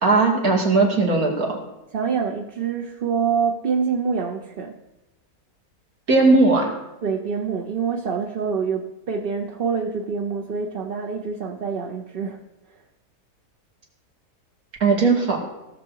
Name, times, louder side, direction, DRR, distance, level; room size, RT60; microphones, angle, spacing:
voice 1, 0.0-1.6 6.1-6.7 14.8-15.4, right 3 dB, 70° right, 0 dB, 2.7 m, -18 dB
voice 2, 1.9-4.8 7.0-12.4 12.7-12.8, right 6 dB, 45° right, 1 dB, 0.9 m, -26 dB
17.5 x 6.7 x 4.7 m, 1.0 s
omnidirectional pair, 1.6 m